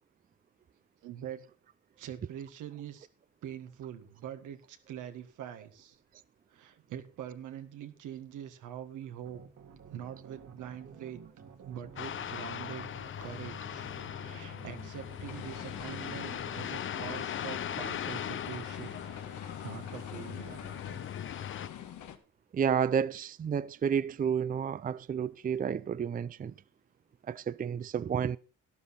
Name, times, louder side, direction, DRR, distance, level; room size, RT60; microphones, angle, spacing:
voice 1, 1.0-1.4 2.0-3.1 3.4-6.0 6.5-9.4 9.9-11.2 11.6-12.9 13.2-19.0 19.6-20.6, right 10 dB, 85° right, 1.7 m, -44 dB
let the organ do the talking, 9.2-21.0, right 7 dB, 65° right, 2.3 m, -53 dB
sound 1, 12.0-21.7, left 9 dB, 40° left, 0.6 m, -39 dB
sound 2, 13.6-22.2, left 10 dB, 75° left, 1.6 m, -46 dB
voice 2, 22.5-26.5 27.3-28.4, right 7 dB, 30° right, 0.5 m, -31 dB
12.0 x 11.5 x 4.2 m
cardioid pair, 90°, 30 cm